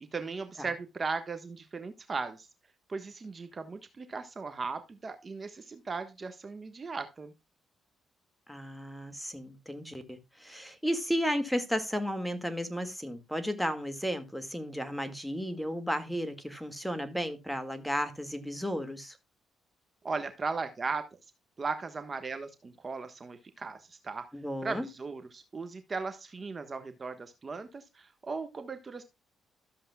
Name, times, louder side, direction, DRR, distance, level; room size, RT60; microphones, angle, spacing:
voice 1, 0.1-2.5 2.9-7.3 20.0-21.0 21.6-24.3 24.6-29.0, right 4 dB, 35° right, 1.3 m, -37 dB
voice 2, 8.5-19.2 24.3-24.9, equal, ahead, 1.9 m, -34 dB
13.5 x 7.4 x 2.2 m
cardioid pair, 90°, 0 cm